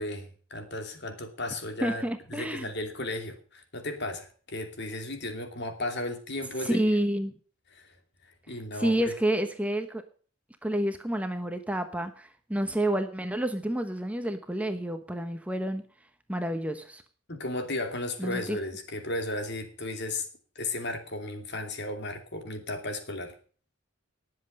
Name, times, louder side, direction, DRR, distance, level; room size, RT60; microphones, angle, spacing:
voice 1, 0.0-2.0 2.3-6.8 7.7-7.9 8.5-9.1 17.3-20.3 20.5-23.3, left 2 dB, 55° left, 6 dB, 2.8 m, -35 dB
voice 2, 1.8-2.7 6.6-7.4 8.7-10.0 10.6-15.8 16.3-17.0 18.2-18.6, right 1 dB, 5° right, 7 dB, 1.0 m, -29 dB
19.0 x 7.9 x 5.4 m, 0.42 s
head